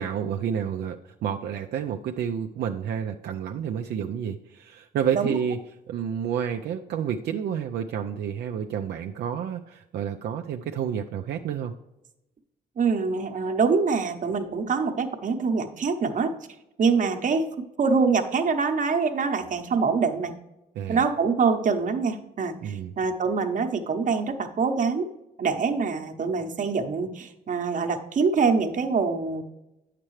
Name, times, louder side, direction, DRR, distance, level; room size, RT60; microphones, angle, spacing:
voice 1, 0.0-5.6 5.9-11.7 20.8-21.1 22.6-22.9, right 8 dB, 75° right, 4 dB, 0.5 m, -30 dB
voice 2, 12.8-16.3 16.8-17.5 17.8-20.3 20.9-25.1 25.4-29.4, right 5 dB, 50° right, 6 dB, 0.9 m, -25 dB
8.7 x 6.7 x 3.2 m, 0.93 s
cardioid pair, 80°, 17 cm